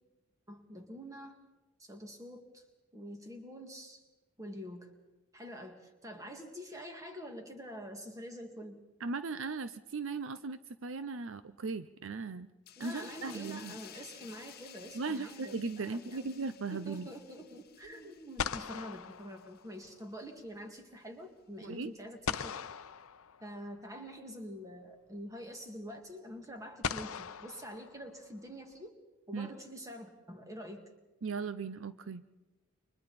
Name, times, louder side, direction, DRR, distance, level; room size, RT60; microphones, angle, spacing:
voice 1, 0.5-1.4 1.8-2.6 2.9-4.0 4.4-4.9 5.3-8.8 12.8-16.3 16.7-22.5 23.4-29.0 29.3-30.9, equal, 15° right, 4 dB, 2.1 m, -46 dB
voice 2, 9.0-12.5 12.8-13.7 14.9-17.1 21.6-21.9 29.3-29.5 31.2-32.2, right 4 dB, 65° right, 12 dB, 0.6 m, -38 dB
sound 1, 12.7-19.8 20.2-20.4, left 10 dB, 50° left, 1.0 m, -55 dB
sound 2, 12.9-13.8 17.8-17.9 18.4-20.1 22.3-23.8 25.2-25.3 26.8-28.5, left 7 dB, 85° left, 0.7 m, -40 dB
29.0 x 25.0 x 4.2 m, 1.1 s
head